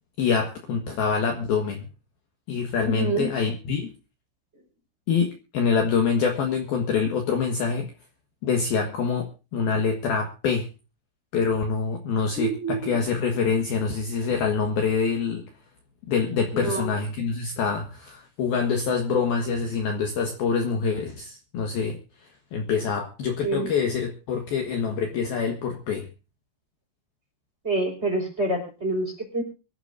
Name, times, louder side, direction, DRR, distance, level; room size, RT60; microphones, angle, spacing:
voice 1, 0.2-1.9 2.5-3.9 5.1-7.9 8.4-10.7 11.3-15.4 16.1-26.1, left 5 dB, 60° left, 4 dB, 2.9 m, -25 dB
voice 2, 2.8-3.3 12.3-13.0 16.5-16.9 23.4-23.7 27.6-29.4, right 2 dB, 15° right, 2 dB, 5.2 m, -27 dB
24.5 x 13.0 x 2.6 m, 0.32 s
omnidirectional pair, 5.8 m